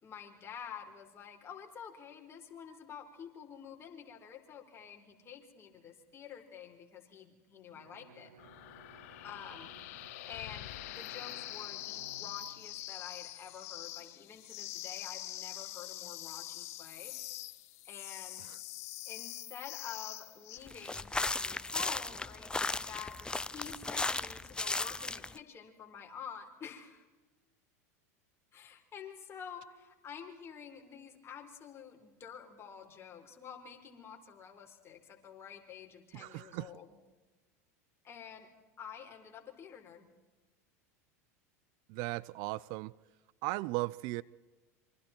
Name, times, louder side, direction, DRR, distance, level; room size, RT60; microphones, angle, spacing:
voice 1, 0.0-8.3 9.2-9.7 10.3-17.2 17.8-18.5 19.0-23.2 23.5-27.1 28.5-36.9 38.0-38.5 38.8-40.1, left 7 dB, 30° left, 2 dB, 4.5 m, -49 dB
Bowed string instrument, 7.7-13.4, right 6 dB, 80° right, 2.8 m, -59 dB
sound 1, 8.4-20.6, left 17 dB, 65° left, 0.9 m, -44 dB
sound 2, 20.7-25.4, left 3 dB, 10° left, 0.6 m, -36 dB
voice 2, 36.1-36.7 41.9-42.9 43.4-44.2, right 21 dB, 55° right, 20 dB, 0.6 m, -37 dB
27.5 x 24.5 x 4.5 m, 1.2 s
hypercardioid pair, 95°, 8 cm